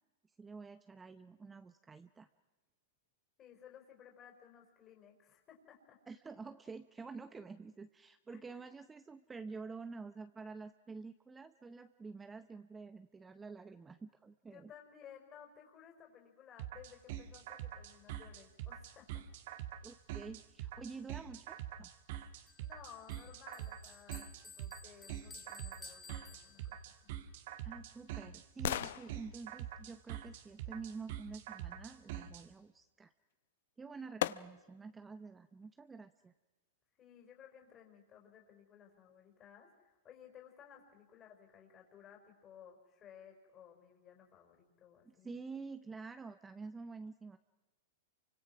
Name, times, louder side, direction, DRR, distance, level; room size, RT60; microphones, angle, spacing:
voice 1, 0.4-2.3 6.1-14.7 19.8-21.9 27.6-33.1 33.8-36.3 45.0-47.4, right 4 dB, 15° right, 10 dB, 0.8 m, -48 dB
voice 2, 3.4-6.0 8.3-8.6 14.5-19.3 22.6-27.1 37.0-45.3, left 8 dB, 30° left, 1 dB, 5.0 m, -58 dB
sound 1, 16.6-32.4, right 12 dB, 60° right, 2.0 m, -45 dB
Bell, 22.5-27.0, left 4 dB, 10° left, 2.2 m, -55 dB
sound 2, 27.1-31.2 33.3-33.4 34.2-34.9 35.4-35.5, left 12 dB, 70° left, 0.8 m, -42 dB
29.0 x 25.0 x 6.1 m, 1.2 s
hypercardioid pair, 130°, 0 cm